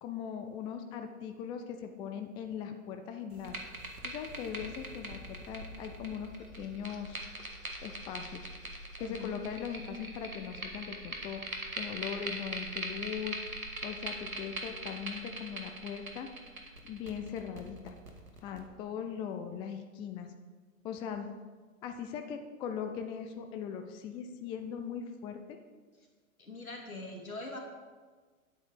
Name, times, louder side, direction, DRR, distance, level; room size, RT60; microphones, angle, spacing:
voice 1, 0.0-3.6 4.0-7.3 7.8-8.5 9.0-11.4 11.8-16.3 16.8-18.0 18.4-20.3 20.8-21.3 21.8-25.6, left 7 dB, 15° left, 6 dB, 0.4 m, -40 dB
sound 1, 3.3-18.6, right 2 dB, 85° right, 1.8 m, -42 dB
voice 2, 9.0-9.4 26.4-27.6, left 3 dB, 85° left, 1 dB, 2.3 m, -42 dB
10.5 x 8.4 x 5.1 m, 1.4 s
figure-of-eight pair, 105°, 41 cm